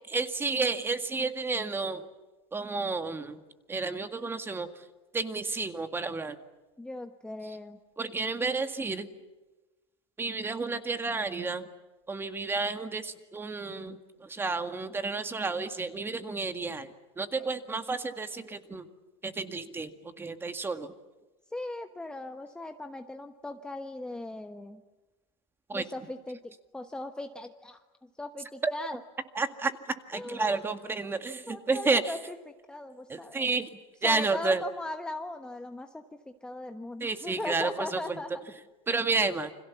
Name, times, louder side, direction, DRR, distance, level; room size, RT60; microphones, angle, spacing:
voice 1, 0.1-2.0 2.5-3.4 3.7-4.7 5.1-6.4 8.0-9.1 10.2-11.7 12.1-18.8 19.2-19.9 20.2-20.9 25.7-25.8 28.6-28.7 29.4-29.7 30.1-32.1 33.1-33.7 34.0-34.6 37.0-38.2 38.9-39.5, right 3 dB, 15° right, 8 dB, 1.9 m, -31 dB
voice 2, 6.8-7.8 21.5-24.8 25.7-27.8 28.2-29.0 30.1-30.7 31.0-31.2 31.5-33.5 34.0-38.3, left 2 dB, 5° left, 6 dB, 1.1 m, -39 dB
29.0 x 26.5 x 7.2 m, 1.2 s
supercardioid pair, 130°, 17 cm